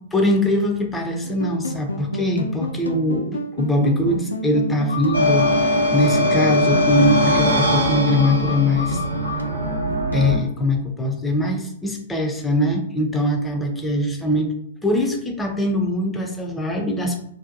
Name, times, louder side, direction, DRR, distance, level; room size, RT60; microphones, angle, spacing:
voice 1, 0.1-9.0 10.1-14.5 14.8-17.2, left 1 dB, 10° left, 2 dB, 0.4 m, -22 dB
sound 1, 1.2-10.2, left 1 dB, 80° left, 0.3 m, -30 dB
sound 2, 5.1-10.4, left 1 dB, 75° right, 0.6 m, -21 dB
2.6 x 2.1 x 2.5 m, 0.74 s
figure-of-eight pair, 110°, 0 cm